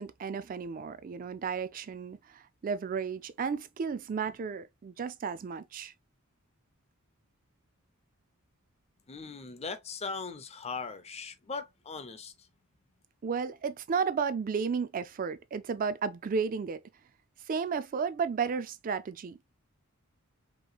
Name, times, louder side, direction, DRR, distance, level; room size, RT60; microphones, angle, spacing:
voice 1, 0.0-5.9 13.2-16.8 17.5-19.4, right 5 dB, 40° right, 0.3 m, -33 dB
voice 2, 9.1-12.3, left 4 dB, 30° left, 0.7 m, -39 dB
5.3 x 3.0 x 2.3 m
head